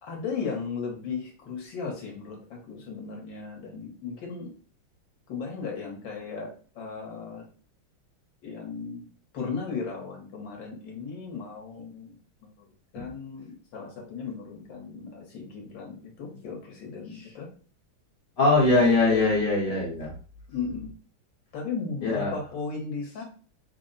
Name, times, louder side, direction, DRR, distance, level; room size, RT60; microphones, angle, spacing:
voice 1, 0.0-4.5 5.3-7.4 8.4-9.1 9.3-12.7 12.9-17.5 18.7-19.4 20.5-20.9 21.5-23.2, left 5 dB, 70° left, 0 dB, 1.6 m, -36 dB
voice 2, 18.4-20.1 22.0-22.3, left 2 dB, 50° left, -4 dB, 1.3 m, -21 dB
4.0 x 2.1 x 3.8 m, 0.41 s
omnidirectional pair, 2.2 m